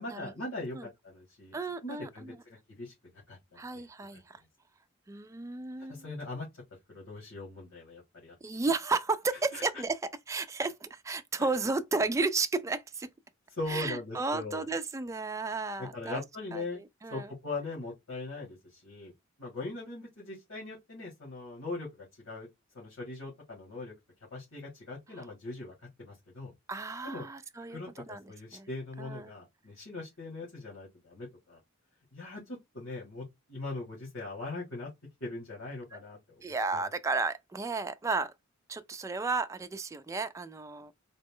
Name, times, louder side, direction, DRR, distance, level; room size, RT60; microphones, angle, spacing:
voice 1, 0.0-2.9 3.3-3.9 4.1-4.2 5.9-6.5 6.9-8.4 9.5-9.6 11.4-11.5 13.5-14.7 15.8-16.8 17.1-19.1 19.4-22.5 22.7-23.9 24.3-26.5 27.0-27.3 27.7-31.6 32.1-34.9 35.2-36.4 36.7-36.9, left 2 dB, 90° left, 2.0 m, -40 dB
voice 2, 1.5-2.4 3.6-4.4 5.1-6.1 8.4-10.0 10.3-13.1 13.7-16.2 16.5-17.3 26.7-27.8 28.1-28.2 28.5-28.7 29.0-29.3 36.4-38.3 38.7-40.9, right 3 dB, 15° right, 0.3 m, -33 dB
4.0 x 2.0 x 3.6 m
head